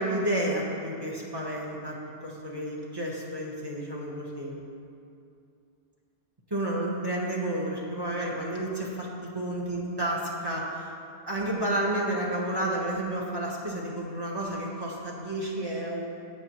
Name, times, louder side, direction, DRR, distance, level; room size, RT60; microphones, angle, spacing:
voice 1, 0.0-1.9 2.2-4.6 6.5-10.9 11.2-16.1, right 1 dB, 20° right, -4 dB, 1.3 m, -31 dB
17.5 x 6.1 x 3.1 m, 2.6 s
omnidirectional pair, 1.2 m